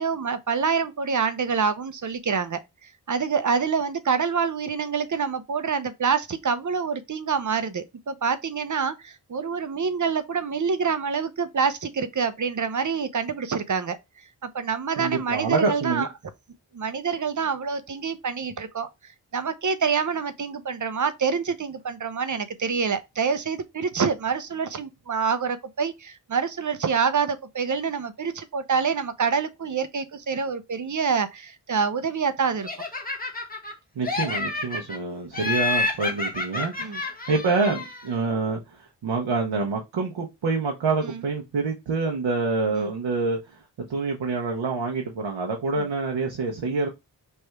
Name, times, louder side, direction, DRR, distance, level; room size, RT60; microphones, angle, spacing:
voice 1, 0.0-14.0 14.4-16.1 16.7-18.9 19.3-32.7 36.8-37.0 41.0-41.2 42.7-42.9 45.8-45.9, right 6 dB, 45° right, 0.7 m, -26 dB
voice 2, 15.0-16.1 33.9-46.9, right 4 dB, 90° right, 0.9 m, -27 dB
Laughter, 32.6-33.7 34.0-35.0 35.3-38.1, left 3 dB, 20° left, 1.2 m, -29 dB
3.3 x 2.6 x 4.6 m
cardioid pair, 50°, 43 cm